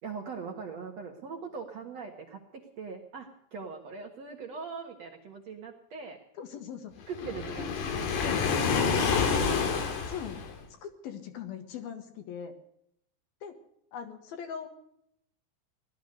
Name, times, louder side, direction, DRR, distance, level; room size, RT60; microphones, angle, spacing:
voice 1, 0.0-6.2 7.1-7.8 8.8-9.6, right 5 dB, 55° right, 3 dB, 2.0 m, -41 dB
voice 2, 6.3-6.9 8.2-8.5 10.1-10.4 10.8-12.5 13.4-13.6 13.9-14.7, left 8 dB, 70° left, 6 dB, 3.3 m, -40 dB
Waves surf, 7.1-10.6, left 6 dB, 90° left, 4.2 m, -28 dB
18.0 x 12.5 x 6.5 m, 0.75 s
omnidirectional pair, 4.6 m